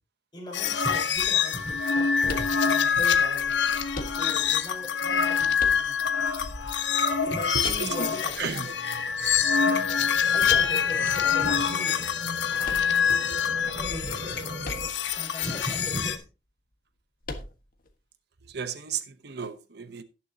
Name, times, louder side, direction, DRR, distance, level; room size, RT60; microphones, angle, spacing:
voice 1, 0.3-3.6 4.1-6.0 7.2-8.7 10.2-12.0 12.5-12.9 13.6-14.8 15.1-16.2, left 1 dB, 25° left, 4.9 m, -38 dB
sound 1, 0.5-16.2, left 7 dB, 80° left, 1.2 m, -25 dB
sound 2, 2.2-3.0 3.9-4.6 5.6-6.3 7.6-8.4 10.5-11.0 12.6-13.5 14.6-15.2 15.5-15.6 17.2-17.9, left 2 dB, 50° left, 1.6 m, -38 dB
sound 3, 6.4-14.9, right 2 dB, 35° right, 0.7 m, -42 dB
voice 2, 7.5-8.1 8.4-8.7 13.1-13.4 18.5-20.0, right 6 dB, 65° right, 0.9 m, -34 dB
18.5 x 7.0 x 2.8 m
head